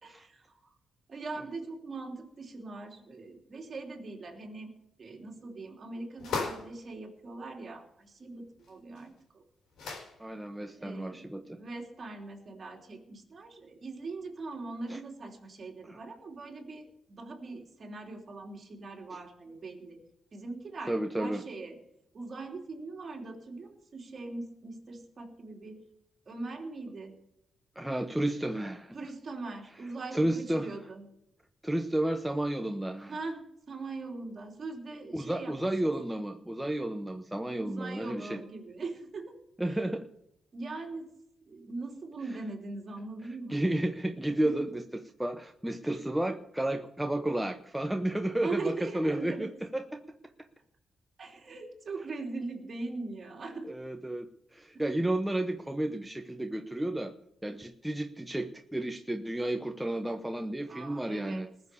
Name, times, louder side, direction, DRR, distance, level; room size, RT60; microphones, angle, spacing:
voice 1, 0.0-0.7 1.1-4.7 5.0-9.4 10.7-16.9 17.2-20.0 20.3-21.8 22.1-25.8 26.3-27.1 28.9-31.0 33.1-35.7 37.6-39.3 39.6-39.8 40.5-41.1 41.5-43.6 44.4-44.7 48.4-49.5 51.2-53.7 60.7-61.4, right 3 dB, 40° right, 1 dB, 3.3 m, -41 dB
sound 1, 6.2-6.8 8.6-8.7 9.0-9.1 9.7-10.2, left 4 dB, 80° left, 4.4 m, -35 dB
voice 2, 10.2-11.6 14.9-15.0 15.8-16.0 19.1-19.2 20.9-21.4 27.8-28.9 30.1-30.7 31.6-33.2 35.1-38.4 39.6-40.0 43.5-50.0 53.7-57.1 57.4-61.5, right 1 dB, 5° right, 5 dB, 0.8 m, -32 dB
20.0 x 6.9 x 7.0 m, 0.79 s
cardioid pair, 130°, 0 cm